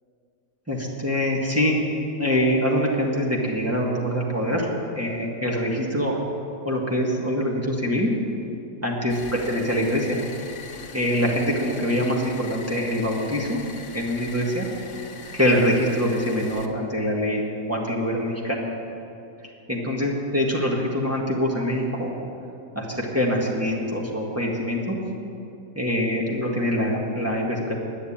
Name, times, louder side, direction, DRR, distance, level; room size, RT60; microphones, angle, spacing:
voice 1, 0.7-1.8 2.2-6.2 6.7-8.1 8.8-10.2 10.9-13.6 13.9-14.7 15.3-18.6 19.7-22.1 22.8-25.0 25.7-27.8, equal, 10° right, -2 dB, 1.7 m, -24 dB
sound 1, 9.1-16.7, left 5 dB, 65° left, 1.5 m, -41 dB
10.0 x 10.0 x 8.7 m, 2.7 s
omnidirectional pair, 1.8 m